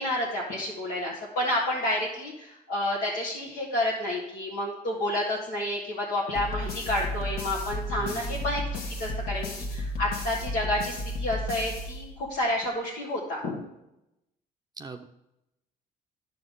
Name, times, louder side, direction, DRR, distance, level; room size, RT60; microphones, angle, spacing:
voice 1, 0.0-8.6 8.9-13.6, left 1 dB, 80° left, -4 dB, 1.6 m, -30 dB
sound 1, 6.3-12.5, left 1 dB, 65° left, 1.5 m, -33 dB
voice 2, 8.0-8.6 14.8-15.1, right 4 dB, 25° right, 6 dB, 0.5 m, -42 dB
9.7 x 6.9 x 3.8 m, 0.88 s
cardioid pair, 110°, 17 cm